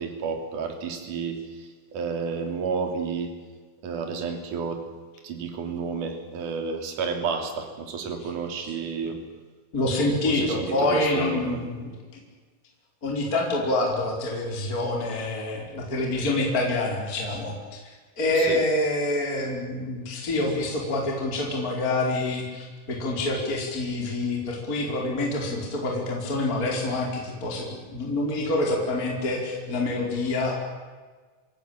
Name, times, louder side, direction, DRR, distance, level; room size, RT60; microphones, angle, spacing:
voice 1, 0.0-3.3 3.8-4.8 5.2-9.2 10.2-11.6 18.3-18.6, right 5 dB, 45° right, 5 dB, 4.2 m, -31 dB
voice 2, 9.7-12.2 13.0-17.8 18.2-30.6, left 2 dB, 20° left, 0 dB, 4.6 m, -27 dB
27.5 x 18.5 x 8.9 m, 1.4 s
omnidirectional pair, 5.9 m